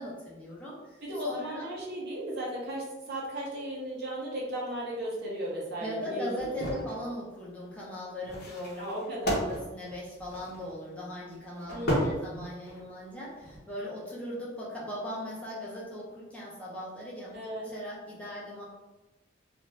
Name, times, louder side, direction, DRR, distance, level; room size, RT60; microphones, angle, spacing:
voice 1, 0.0-1.7 5.8-8.8 9.4-17.4 17.6-18.6, equal, 5° left, -6 dB, 0.6 m, -39 dB
voice 2, 1.0-6.6 8.8-9.4 11.7-12.2 17.3-17.7, right 1 dB, 60° right, -4 dB, 0.8 m, -35 dB
sound 1, 6.4-7.0 8.2-10.7 11.6-12.8 13.3-13.6, equal, 60° left, 0.7 m, -33 dB
2.5 x 2.3 x 3.1 m, 1.1 s
head